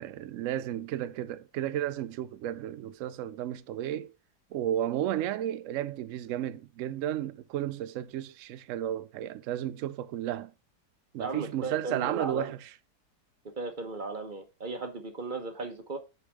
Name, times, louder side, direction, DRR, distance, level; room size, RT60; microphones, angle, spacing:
voice 1, 0.0-4.1 4.5-10.5 11.1-12.7, right 12 dB, 75° right, 0.7 m, -33 dB
voice 2, 11.2-12.5 13.6-16.0, right 3 dB, 35° right, 1.1 m, -36 dB
6.6 x 4.6 x 4.6 m
omnidirectional pair, 1.9 m